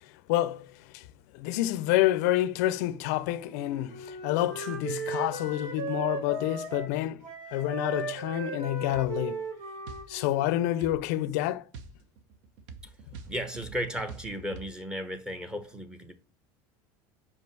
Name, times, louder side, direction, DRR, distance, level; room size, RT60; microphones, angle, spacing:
voice 1, 0.3-0.7 0.9-1.0 1.3-7.2 7.5-9.4 10.1-11.7, left 14 dB, 75° left, 0.5 m, -28 dB
Wind instrument woodwind instrument, 3.4-11.1, right 3 dB, 50° right, 2.9 m, -37 dB
sound 1, 8.9-9.2 9.9-10.1 10.8-11.0 11.7-14.7, right 4 dB, 70° right, 1.0 m, -45 dB
voice 2, 13.3-16.1, equal, 10° right, 0.9 m, -35 dB
5.4 x 5.3 x 4.6 m
cardioid pair, 155°, 9 cm